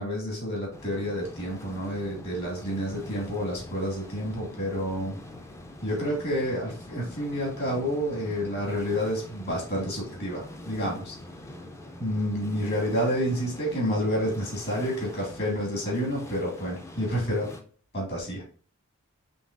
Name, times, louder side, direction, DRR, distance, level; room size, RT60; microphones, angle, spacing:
voice 1, 0.0-5.2 5.8-11.2 12.0-17.5 17.9-18.4, equal, 50° left, -3 dB, 1.9 m, -29 dB
sound 1, 0.7-17.6, left 1 dB, 15° left, 0.4 m, -44 dB
5.3 x 3.2 x 2.4 m, 0.43 s
head